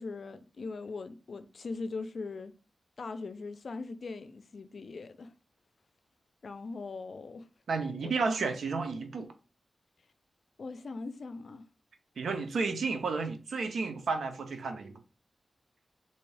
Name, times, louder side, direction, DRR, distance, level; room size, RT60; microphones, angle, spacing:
voice 1, 0.0-2.5 3.0-5.3 6.4-7.5 8.0-8.1 10.6-11.6, left 3 dB, 65° left, 0.4 m, -40 dB
voice 2, 7.7-9.3 12.2-15.0, right 4 dB, 90° right, 0.6 m, -32 dB
3.5 x 2.8 x 3.2 m
cardioid pair, 70°, 0 cm